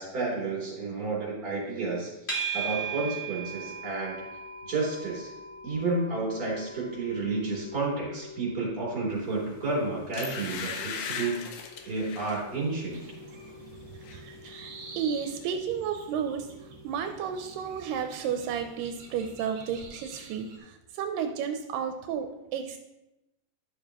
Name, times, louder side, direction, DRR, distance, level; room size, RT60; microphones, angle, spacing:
voice 1, 0.0-2.1 2.5-4.3 4.6-5.3 5.6-11.4 11.9-13.1, right 3 dB, 30° right, -5 dB, 3.6 m, -31 dB
sound 1, 2.3-19.5, right 4 dB, 20° left, 1.6 m, -42 dB
sound 2, 9.4-9.6 10.1-12.5 12.9-13.1 13.5-14.2 14.5-14.6, left 6 dB, 75° left, 2.2 m, -38 dB
sound 3, 12.9-20.6, right 4 dB, 60° right, 1.9 m, -48 dB
voice 2, 14.1-16.5 16.8-22.8, right 7 dB, 85° right, 6 dB, 2.2 m, -32 dB
11.5 x 6.6 x 2.9 m, 0.95 s
omnidirectional pair, 3.9 m